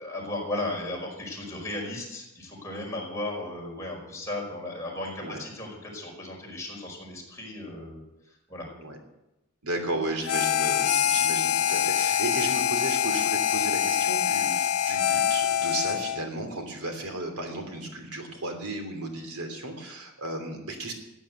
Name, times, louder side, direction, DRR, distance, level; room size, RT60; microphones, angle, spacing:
voice 1, 0.0-8.7, left 2 dB, 15° left, -3 dB, 5.3 m, -35 dB
voice 2, 9.6-20.9, right 2 dB, 90° right, 5 dB, 3.1 m, -34 dB
Harmonica, 10.3-16.3, left 9 dB, 80° left, 0.6 m, -25 dB
15.0 x 8.9 x 8.0 m, 0.96 s
head